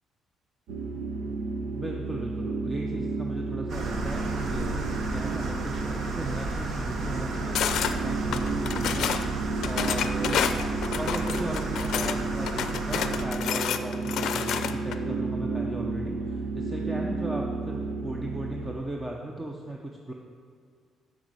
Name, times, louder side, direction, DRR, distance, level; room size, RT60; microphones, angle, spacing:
sound 1, 0.7-18.8, right 3 dB, 90° right, 1.0 m, -32 dB
voice 1, 1.7-7.6 7.9-10.6 10.9-20.1, right 1 dB, 10° right, 0 dB, 0.7 m, -37 dB
sound 2, 3.7-13.3, right 3 dB, 50° right, 1.1 m, -33 dB
sound 3, 7.5-7.9 8.3-9.3 9.6-12.2 12.5-15.0, left 9 dB, 65° left, 0.5 m, -29 dB
9.4 x 6.1 x 7.8 m, 2.1 s
cardioid pair, 155°, 0 cm